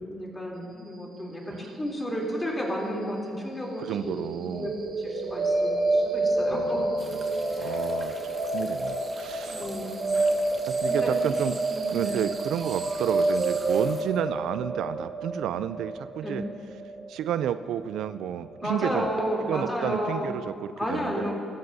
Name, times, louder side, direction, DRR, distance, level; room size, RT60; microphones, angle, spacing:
voice 1, 0.0-4.7 5.0-6.8 7.6-7.8 9.5-9.9 10.8-11.1 11.7-12.2 16.2-16.4 18.6-20.3 20.8-21.3, equal, 15° left, -3 dB, 3.2 m, -32 dB
voice 2, 3.8-4.8 6.5-6.7 7.2-8.2 8.5-9.6 10.1-10.3 10.6-11.6 11.9-16.4 17.1-19.1 19.5-21.3, right 10 dB, 80° right, 13 dB, 0.3 m, -31 dB
sound 1, 4.6-18.6, right 2 dB, 50° right, 1.0 m, -28 dB
sound 2, 7.0-14.0, right 3 dB, 30° right, 1.1 m, -45 dB
16.5 x 13.5 x 2.7 m, 2.2 s
cardioid pair, 90°, 0 cm